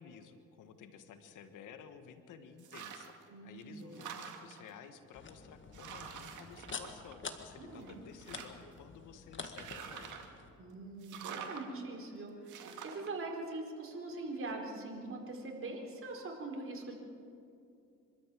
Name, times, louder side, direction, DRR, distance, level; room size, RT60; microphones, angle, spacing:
voice 1, 0.0-3.2 3.4-10.3, left 7 dB, 85° left, 8 dB, 1.6 m, -53 dB
sound 1, 2.6-3.2 3.6-4.7 5.3-5.4 5.7-7.5 7.8-8.7 9.4-10.4 11.0-11.6 12.5-13.1, right 7 dB, 75° right, 2.2 m, -47 dB
voice 2, 3.3-4.1 7.6-8.0 10.6-16.9, right 2 dB, 45° right, 1 dB, 4.4 m, -43 dB
sound 2, 5.1-10.5, left 5 dB, 40° left, 1.9 m, -48 dB
25.0 x 13.5 x 7.6 m, 2.6 s
cardioid pair, 90°, 30 cm